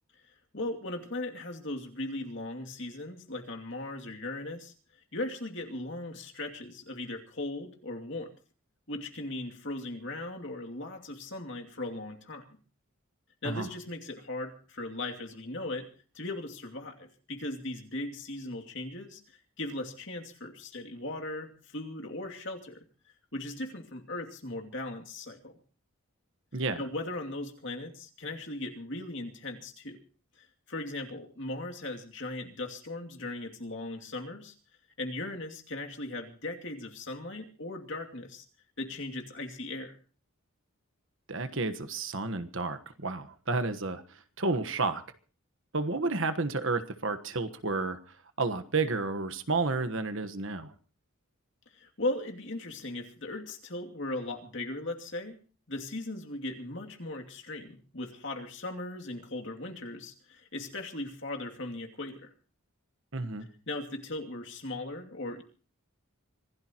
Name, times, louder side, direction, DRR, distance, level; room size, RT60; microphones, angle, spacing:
voice 1, 0.5-4.7 5.1-8.3 8.9-12.4 13.4-15.9 16.1-22.8 23.3-25.5 26.8-30.0 30.4-34.5 35.0-38.4 38.8-39.9 51.7-55.3 55.7-62.3 63.7-65.4, left 2 dB, 55° left, 3 dB, 2.6 m, -38 dB
voice 2, 41.3-45.0 45.7-50.7 63.1-63.5, right 3 dB, 60° right, 10 dB, 1.3 m, -31 dB
25.5 x 16.5 x 3.0 m, 0.39 s
head